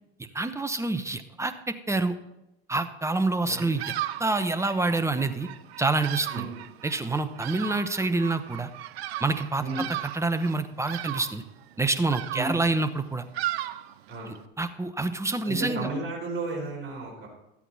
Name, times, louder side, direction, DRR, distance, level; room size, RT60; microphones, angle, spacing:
voice 1, 0.2-2.2 2.7-3.9 4.2-5.5 5.8-6.5 6.8-8.7 9.2-9.6 10.1-11.4 11.8-13.2 14.6-15.9, right 3 dB, 10° right, 10 dB, 0.9 m, -27 dB
Bird vocalization bird call bird song, 3.5-14.4, right 14 dB, 85° right, 0.7 m, -37 dB
voice 2, 15.4-17.3, right 3 dB, 40° right, -1 dB, 4.3 m, -33 dB
13.0 x 8.4 x 4.1 m, 0.91 s
hypercardioid pair, 85°, 31 cm